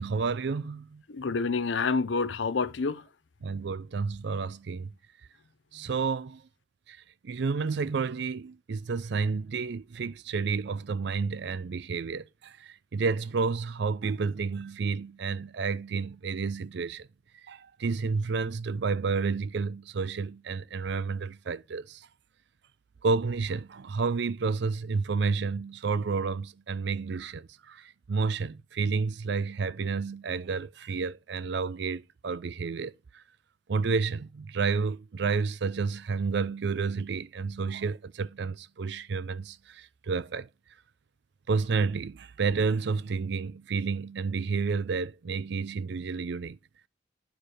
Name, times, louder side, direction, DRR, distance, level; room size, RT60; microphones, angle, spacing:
voice 1, 0.0-1.0 3.4-4.9 5.7-6.4 6.9-7.0 7.2-17.1 17.5-22.1 23.0-33.2 33.7-40.5 41.5-46.6, right 4 dB, 60° right, 0.5 m, -30 dB
voice 2, 1.1-3.1 5.8-5.9, left 4 dB, 70° left, 0.6 m, -28 dB
9.3 x 4.6 x 4.9 m
head